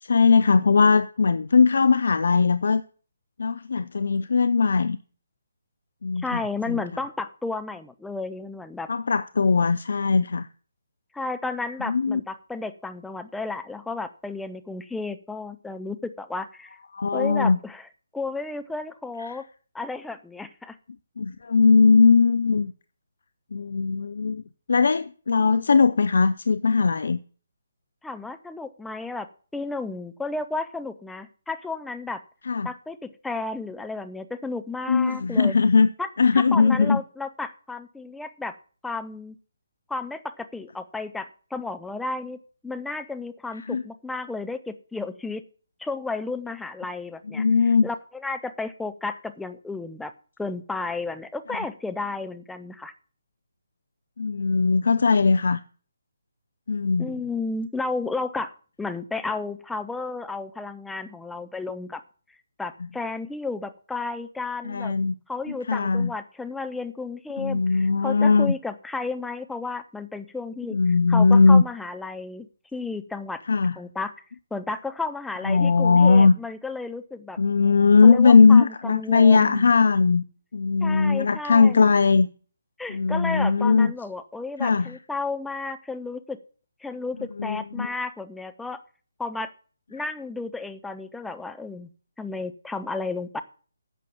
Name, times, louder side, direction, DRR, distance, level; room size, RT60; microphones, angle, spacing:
voice 1, 0.0-2.8 3.4-5.0 6.0-6.8 8.9-10.5 11.8-12.2 16.9-17.6 19.2-19.4 21.2-22.7 23.5-24.4 24.7-27.2 32.5-32.7 34.9-35.9 36.2-37.0 43.6-43.8 47.3-47.9 54.2-55.6 56.7-57.2 64.6-65.1 65.7-66.1 67.4-68.5 70.7-71.6 73.5-73.8 75.4-76.3 77.4-80.2 80.5-82.3 82.9-83.9 84.6-85.0 87.4-87.9, left 4 dB, 60° left, 0.6 m, -19 dB
voice 2, 6.2-8.9 11.1-16.8 17.1-17.9 18.1-19.4 19.7-20.8 28.0-32.2 32.6-35.5 36.0-38.6 38.8-39.4 39.9-42.4 42.6-45.4 45.8-47.5 47.8-50.1 50.4-52.9 57.0-58.5 58.8-62.0 62.6-65.0 65.3-70.8 71.1-73.4 73.8-74.1 74.5-77.4 78.0-79.7 80.8-81.9 82.8-86.4 86.8-88.8 89.2-89.5 89.9-91.9 92.2-93.4, left 3 dB, 5° left, 0.7 m, -33 dB
11.0 x 7.6 x 7.1 m
figure-of-eight pair, 145°, 0 cm